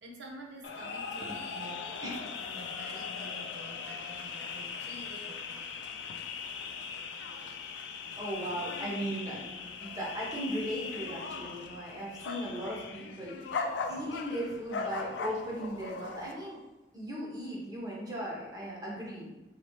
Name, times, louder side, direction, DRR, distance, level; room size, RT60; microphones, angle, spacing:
voice 1, 0.0-2.1 2.4-5.7, right 1 dB, 85° right, -1 dB, 0.8 m, -49 dB
sound 1, 0.6-16.3, left 5 dB, 85° left, 0.4 m, -39 dB
voice 2, 8.1-13.4 13.9-16.6 16.9-19.3, equal, 20° right, -5 dB, 1.1 m, -37 dB
4.0 x 2.9 x 3.1 m, 1.1 s
head